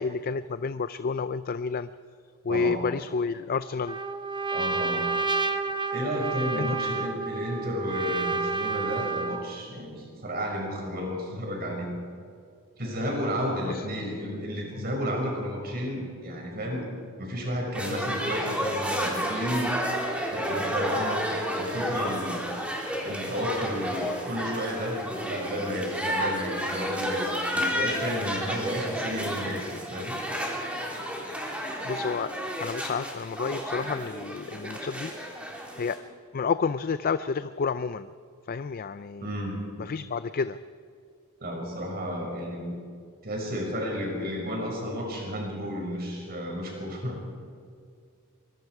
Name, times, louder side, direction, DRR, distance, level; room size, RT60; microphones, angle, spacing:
voice 1, 0.0-1.9 2.4-4.0 6.6-6.7 13.7-13.9 14.8-14.9 31.8-32.3 32.6-35.1 35.8-36.0 36.3-38.1 38.5-39.3 39.8-40.6, left 5 dB, 45° left, 13 dB, 0.4 m, -30 dB
voice 2, 2.5-2.8 4.5-5.1 5.9-11.9 12.8-16.9 17.2-19.7 20.3-22.4 23.0-30.2 39.2-39.6 41.4-42.8 43.2-47.2, equal, 45° right, 0 dB, 6.0 m, -32 dB
Trumpet, 3.9-9.5, right 4 dB, 20° right, 0.9 m, -30 dB
sound 1, 17.7-36.0, equal, 5° right, 3.3 m, -31 dB
24.5 x 22.5 x 4.8 m, 2.2 s
head